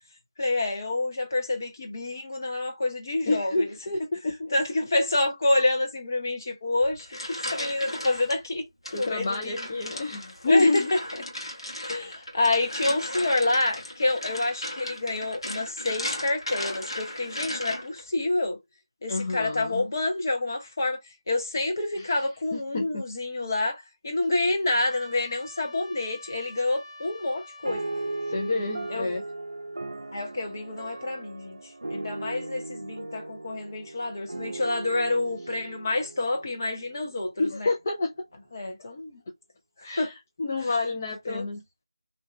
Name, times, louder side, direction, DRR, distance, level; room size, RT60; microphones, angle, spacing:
voice 1, 0.4-3.7 4.5-8.7 8.9-9.7 10.5-11.0 11.8-18.6 19.0-21.0 21.3-27.8 28.9-29.1 30.1-31.6 31.9-37.7 38.5-39.2 39.8-40.1 41.3-41.4, left 2 dB, 40° left, 0.8 m, -28 dB
voice 2, 3.3-4.6 8.9-10.9 11.9-12.3 19.1-19.9 22.0-22.1 22.5-23.0 28.3-29.2 37.4-38.1 38.8-38.9 39.8-41.6, left 2 dB, 25° left, 0.3 m, -28 dB
sound 1, 6.8-8.4 8.9-18.0, left 1 dB, 80° left, 1.2 m, -36 dB
Trumpet, 24.9-29.0, left 2 dB, 5° left, 0.8 m, -46 dB
sound 2, 27.6-37.4, right 2 dB, 80° right, 0.4 m, -37 dB
2.6 x 2.2 x 3.0 m
figure-of-eight pair, 165°, 3 cm